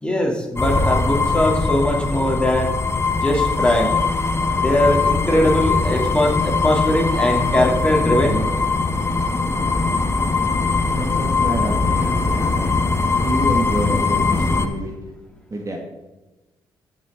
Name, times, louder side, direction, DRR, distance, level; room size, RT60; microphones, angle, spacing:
voice 1, 0.0-2.7 3.1-4.0 4.6-8.5, left 1 dB, 10° left, 1 dB, 2.9 m, -20 dB
sound 1, 0.6-14.7, left 4 dB, 25° left, 1.2 m, -21 dB
voice 2, 10.9-12.8 13.2-15.0 15.5-15.8, right 1 dB, 35° right, 1 dB, 1.8 m, -27 dB
14.5 x 6.2 x 3.7 m, 1.1 s
hypercardioid pair, 50°, 10 cm